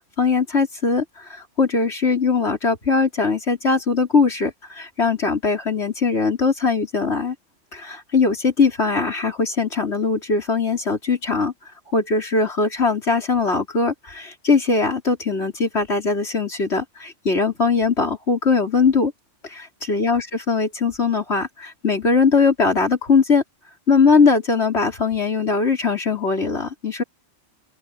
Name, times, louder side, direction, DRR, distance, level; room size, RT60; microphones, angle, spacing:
voice 1, 0.2-7.3 7.7-11.5 11.9-19.1 19.4-19.6 19.9-23.4 23.9-27.0, left 4 dB, 60° left, 4.6 m, -20 dB
open air
omnidirectional pair, 1.3 m